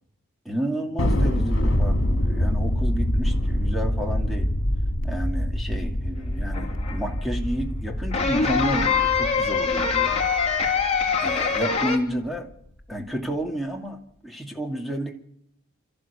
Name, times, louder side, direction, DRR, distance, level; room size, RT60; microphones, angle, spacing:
voice 1, 0.4-4.5 5.0-10.1 11.2-12.5 12.9-15.2, equal, ahead, 3 dB, 2.4 m, -31 dB
Thunder, 1.0-11.6, equal, 60° left, 2.7 m, -25 dB
sound 1, 6.2-7.0 8.1-12.0, left 5 dB, 30° left, 2.7 m, -24 dB
27.0 x 14.0 x 6.9 m, 0.75 s
head